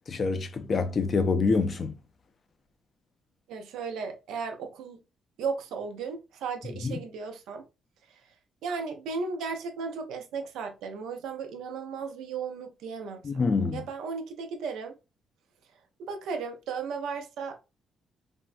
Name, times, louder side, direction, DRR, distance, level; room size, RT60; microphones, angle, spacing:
voice 1, 0.1-2.0 6.8-7.0 13.2-13.8, left 4 dB, 45° left, 0.5 m, -26 dB
voice 2, 3.5-5.0 5.4-7.6 8.1-8.2 8.6-13.3 13.7-14.9 16.0-17.7, right 5 dB, 85° right, 0.6 m, -35 dB
3.5 x 2.1 x 2.5 m
cardioid pair, 90°, 0 cm